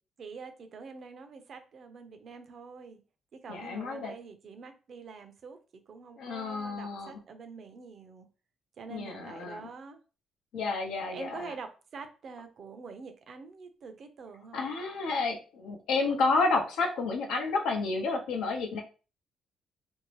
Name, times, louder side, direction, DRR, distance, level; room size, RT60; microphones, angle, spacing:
voice 1, 0.2-3.0 3.3-5.6 5.9-8.3 8.8-10.0 11.1-14.7, right 5 dB, 55° right, 8 dB, 0.5 m, -46 dB
voice 2, 3.5-4.1 6.2-7.2 8.9-9.6 10.5-11.5 14.5-18.8, left 3 dB, 85° left, 3 dB, 0.6 m, -30 dB
2.6 x 2.0 x 3.0 m, 0.34 s
cardioid pair, 90°, 0 cm